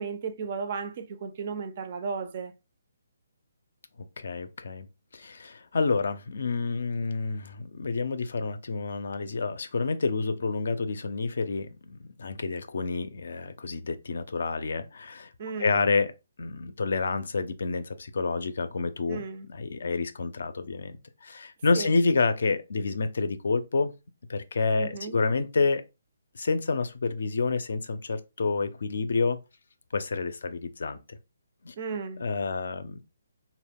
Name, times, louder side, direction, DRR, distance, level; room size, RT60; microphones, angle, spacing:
voice 1, 0.0-2.5 15.4-15.8 19.1-19.5 21.7-21.9 24.7-25.2 31.8-32.2, right 5 dB, 40° right, 0.4 m, -34 dB
voice 2, 4.2-4.9 5.1-15.3 15.6-16.1 16.4-19.2 19.5-23.9 24.3-25.8 26.3-29.4 29.9-31.2 31.6-31.7 32.2-33.0, left 4 dB, 70° left, 0.4 m, -29 dB
2.2 x 2.0 x 3.4 m
hypercardioid pair, 155°, 0 cm